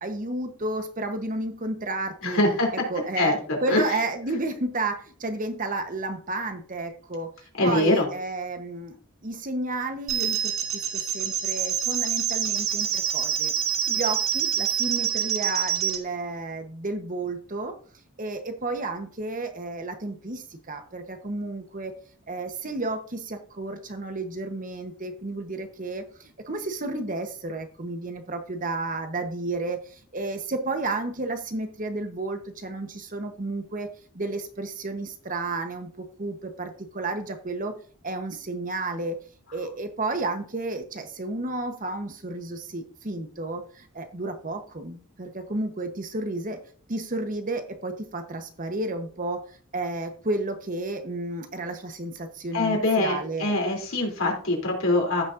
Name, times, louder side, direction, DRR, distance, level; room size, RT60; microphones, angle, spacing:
voice 1, 0.0-2.4 2.7-7.3 7.6-9.0 9.2-13.5 13.9-17.8 18.2-22.0 22.3-37.7 38.0-39.2 39.5-46.6 46.9-53.6, right 2 dB, 40° right, 6 dB, 1.1 m, -32 dB
voice 2, 2.2-2.7 3.2-3.8 7.6-8.1 13.9-14.0 52.5-55.2, left 2 dB, 70° left, 0 dB, 3.3 m, -23 dB
sound 1, 10.1-16.0, right 9 dB, 70° right, 1.7 m, -26 dB
15.0 x 6.4 x 2.6 m, 0.43 s
head